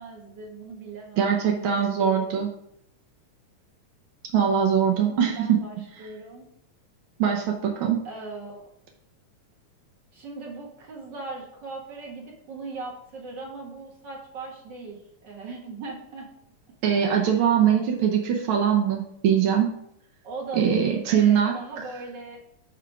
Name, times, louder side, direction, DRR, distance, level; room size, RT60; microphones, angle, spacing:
voice 1, 0.0-2.3 4.9-6.5 8.0-8.6 10.1-16.3 17.0-17.2 20.2-22.4, right 3 dB, 45° right, -1 dB, 1.9 m, -39 dB
voice 2, 1.2-2.5 4.3-5.6 7.2-8.0 16.8-19.7 20.5-21.5, right 8 dB, 75° right, 1 dB, 1.2 m, -22 dB
9.5 x 3.6 x 4.9 m, 0.73 s
omnidirectional pair, 3.4 m